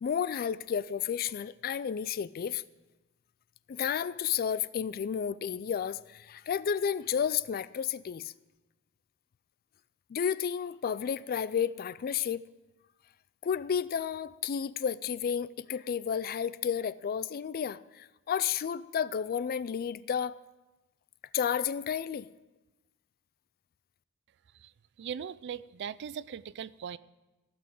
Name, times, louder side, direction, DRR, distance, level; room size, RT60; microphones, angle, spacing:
voice 1, 0.0-2.6 3.7-8.3 10.1-12.4 13.4-20.4 21.3-22.3, left 8 dB, 40° left, 0.3 m, -32 dB
voice 2, 25.0-27.0, right 7 dB, 50° right, 0.3 m, -39 dB
16.0 x 6.1 x 7.6 m
head